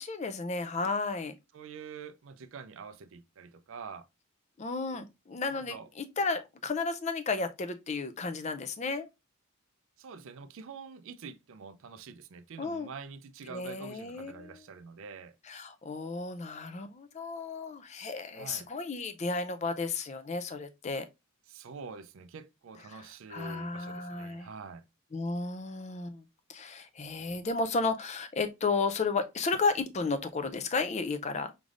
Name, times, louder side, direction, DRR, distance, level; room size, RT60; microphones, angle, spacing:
voice 1, 0.0-1.3 4.6-9.1 12.6-12.9 13.5-14.6 15.5-21.1 22.9-24.5 25.1-26.2 26.5-31.5, left 4 dB, 30° left, 0.4 m, -33 dB
voice 2, 1.5-4.1 5.5-5.9 10.0-15.4 18.4-18.7 21.5-24.9, right 5 dB, 60° right, 0.4 m, -46 dB
5.1 x 3.2 x 2.4 m
head